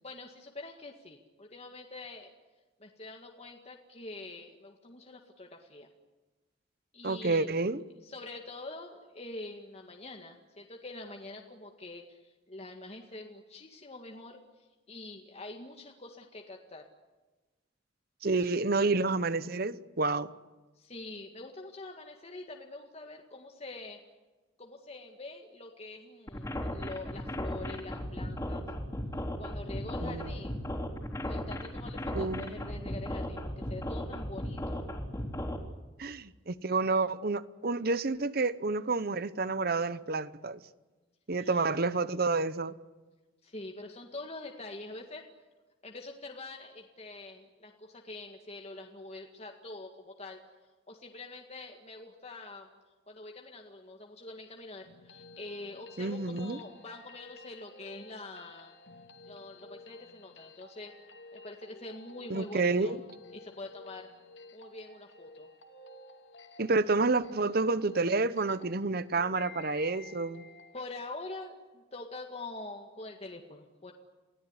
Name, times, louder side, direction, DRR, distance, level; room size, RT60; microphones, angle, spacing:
voice 1, 0.0-2.3 2.8-5.9 6.9-7.5 8.0-16.9 18.4-18.5 20.8-24.0 24.6-28.7 29.4-30.6 31.2-34.9 41.4-41.7 43.4-45.3 45.8-50.4 50.9-52.7 53.1-58.7 59.3-60.9 61.3-62.9 63.3-64.1 64.5-65.5 70.7-73.9, left 2 dB, 35° left, 1.9 m, -45 dB
voice 2, 7.0-7.8 18.2-20.3 30.0-30.3 32.1-33.0 36.0-40.6 41.3-42.7 56.0-56.6 62.3-63.0 66.6-70.4, right 3 dB, 55° right, 0.9 m, -29 dB
sound 1, 26.3-35.6, left 1 dB, 15° left, 3.7 m, -36 dB
sound 2, 54.9-70.8, left 3 dB, 70° left, 2.6 m, -52 dB
28.5 x 18.0 x 9.8 m
head